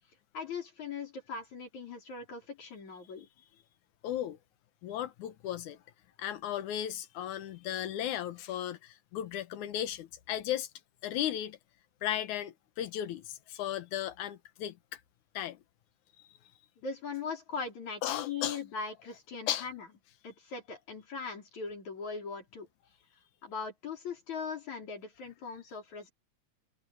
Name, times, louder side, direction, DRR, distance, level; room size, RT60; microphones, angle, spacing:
voice 1, 0.3-3.3 16.8-19.9 20.2-22.7 23.4-26.1, left 5 dB, 70° left, 6.3 m, -40 dB
voice 2, 4.0-4.4 4.8-5.8 6.2-10.7 11.0-11.6 12.0-15.0 15.3-15.6 16.2-16.3 18.0-18.6 19.5-19.7, left 11 dB, 85° left, 2.5 m, -35 dB
open air
omnidirectional pair, 3.4 m